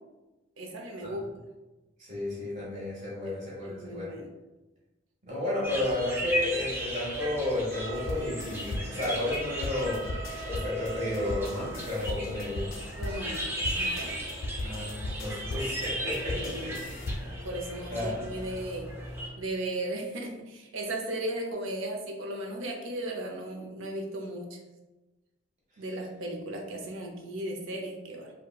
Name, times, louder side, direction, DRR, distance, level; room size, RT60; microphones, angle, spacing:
voice 1, 0.6-1.2 3.2-3.3 3.6-4.3 12.9-14.4 16.3-16.9 17.4-18.9 19.4-24.6 25.8-28.3, right 1 dB, 80° right, 1 dB, 0.6 m, -36 dB
voice 2, 2.0-4.1 5.2-10.0 10.4-12.7 14.6-17.3 17.9-18.2, left 1 dB, 35° right, -7 dB, 1.2 m, -32 dB
sound 1, 5.6-19.3, equal, 10° right, 0.4 m, -36 dB
sound 2, 7.7-15.5, right 4 dB, 55° right, 1.1 m, -45 dB
sound 3, 7.9-17.4, left 1 dB, 75° left, 0.4 m, -38 dB
4.1 x 2.2 x 2.3 m, 1.1 s
head